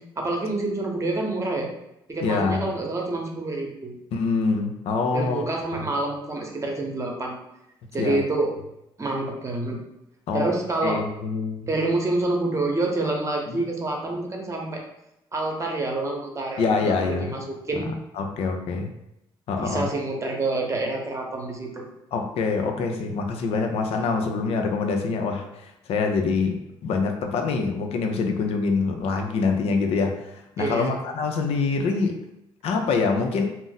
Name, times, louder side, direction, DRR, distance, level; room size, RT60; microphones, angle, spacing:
voice 1, 0.2-1.7 2.1-4.0 5.1-7.4 7.9-8.5 9.0-9.8 10.3-11.0 11.7-14.8 15.3-17.9 19.6-21.8 30.6-30.9, right 2 dB, 30° right, 1 dB, 0.8 m, -27 dB
voice 2, 2.2-2.7 4.1-5.4 8.0-8.2 10.3-10.5 10.8-11.7 13.5-13.6 16.6-17.3 17.7-17.8 18.2-18.9 19.5-19.9 22.1-26.6 26.8-32.2 32.6-33.4, left 4 dB, 75° left, 4 dB, 0.5 m, -25 dB
2.5 x 2.0 x 3.9 m, 0.85 s
supercardioid pair, 70°, 10 cm